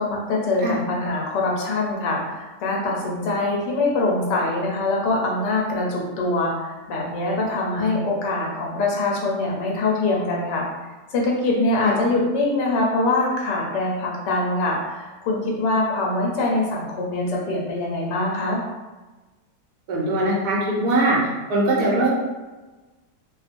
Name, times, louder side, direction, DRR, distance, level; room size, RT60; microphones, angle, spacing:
voice 1, 0.0-10.7 11.1-18.6, left 2 dB, 85° left, -2 dB, 1.3 m, -23 dB
voice 2, 19.9-21.2 21.5-22.1, right 2 dB, 70° right, -4 dB, 1.1 m, -21 dB
2.9 x 2.1 x 2.5 m, 1.2 s
omnidirectional pair, 1.8 m